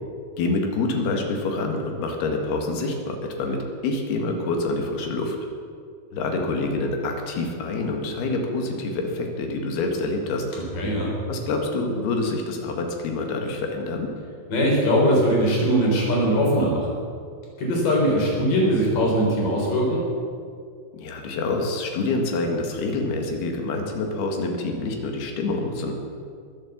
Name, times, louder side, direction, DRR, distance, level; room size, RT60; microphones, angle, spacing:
voice 1, 0.4-5.4 6.1-10.5 11.3-14.1 18.3-18.5 20.9-25.9, left 3 dB, 80° left, 3 dB, 3.7 m, -27 dB
voice 2, 10.7-11.1 14.5-16.9 17.6-20.0, equal, 60° left, -2 dB, 5.4 m, -21 dB
21.5 x 7.8 x 7.3 m, 2.3 s
omnidirectional pair, 4.5 m